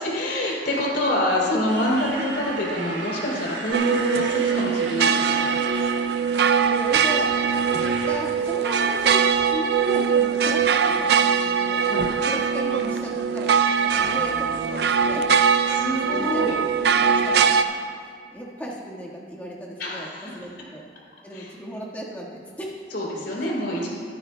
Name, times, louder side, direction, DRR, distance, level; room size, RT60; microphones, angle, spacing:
voice 1, 0.0-5.5 11.9-12.1 15.7-16.6 19.8-20.3 21.3-21.5 22.9-23.9, left 1 dB, 60° left, -4 dB, 3.2 m, -26 dB
Motorcycle, 1.7-8.2, right 3 dB, 75° right, 1.3 m, -36 dB
sound 1, 3.7-17.6, right 6 dB, 60° right, 0.4 m, -21 dB
voice 2, 6.3-11.8 12.2-13.6 13.9-15.3 15.6-16.5 17.0-17.7 18.3-20.1 20.3-20.8 21.2-22.8 23.4-23.5, equal, 10° left, -4 dB, 1.5 m, -35 dB
22.5 x 9.7 x 2.2 m, 2.1 s
head